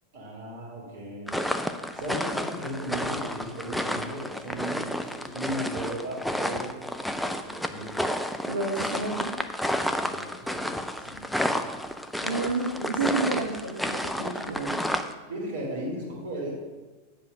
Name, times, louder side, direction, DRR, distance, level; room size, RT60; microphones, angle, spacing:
voice 1, 0.1-1.3 2.0-6.7 7.2-8.0 9.8-11.6 15.3-16.5, right 1 dB, 60° right, -3 dB, 3.2 m, -36 dB
sound 1, 1.3-15.1, equal, ahead, 0.5 m, -31 dB
voice 2, 8.5-9.4 12.2-14.9, right 3 dB, 75° right, -1 dB, 1.1 m, -30 dB
8.2 x 5.3 x 6.5 m, 1.3 s
figure-of-eight pair, 90°, 0 cm